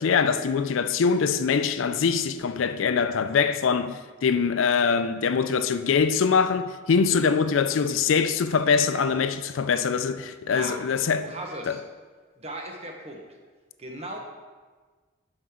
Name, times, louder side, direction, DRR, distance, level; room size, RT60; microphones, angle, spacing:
voice 1, 0.0-11.2 11.7-11.8, left 5 dB, 80° left, 0.4 m, -23 dB
voice 2, 11.2-11.8 12.4-13.2 13.8-14.2, right 1 dB, 30° right, 1.1 m, -37 dB
11.5 x 5.2 x 3.7 m
head